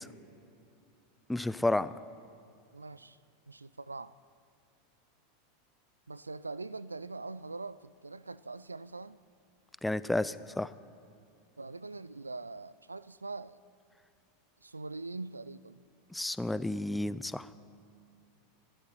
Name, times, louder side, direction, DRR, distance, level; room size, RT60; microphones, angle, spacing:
voice 1, 1.3-1.9 9.8-10.7 16.1-17.5, left 2 dB, 5° left, 16 dB, 0.5 m, -31 dB
voice 2, 2.7-3.2 3.5-4.1 6.1-9.2 11.6-13.6 14.6-15.8, right 3 dB, 85° right, 18 dB, 0.3 m, -42 dB
26.0 x 12.0 x 4.4 m, 2.5 s
figure-of-eight pair, 85°, 0 cm